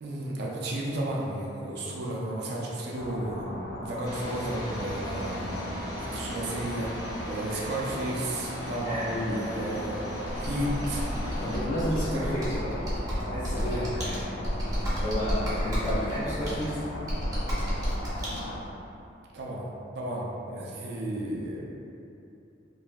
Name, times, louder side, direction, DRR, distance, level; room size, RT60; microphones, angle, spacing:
voice 1, 0.0-3.5 3.8-5.5 6.1-6.9 7.2-10.0 10.4-11.0 12.1-12.4 13.6-13.8 19.3-21.6, right 1 dB, 60° right, -3 dB, 0.4 m, -33 dB
sound 1, 3.0-18.6, left 1 dB, 85° left, 0.4 m, -38 dB
sound 2, 4.0-11.6, equal, 20° left, 0.5 m, -38 dB
voice 2, 8.8-9.8 11.4-14.3 15.0-16.8, equal, 65° left, -12 dB, 0.9 m, -32 dB
Computer keyboard, 10.3-18.4, equal, 20° right, 0.6 m, -32 dB
3.2 x 2.5 x 2.2 m, 2.7 s
head